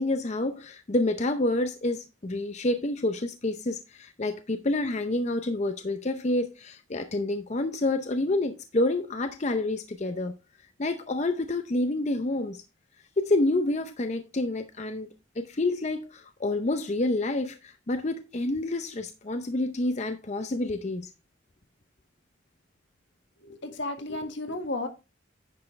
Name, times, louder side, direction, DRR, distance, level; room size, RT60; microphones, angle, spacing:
voice 1, 0.0-10.3 10.8-12.6 13.2-15.1 15.4-21.1, left 2 dB, 35° left, 0.6 m, -28 dB
voice 2, 23.4-24.9, left 2 dB, 75° left, 1.6 m, -33 dB
9.8 x 6.6 x 3.2 m
head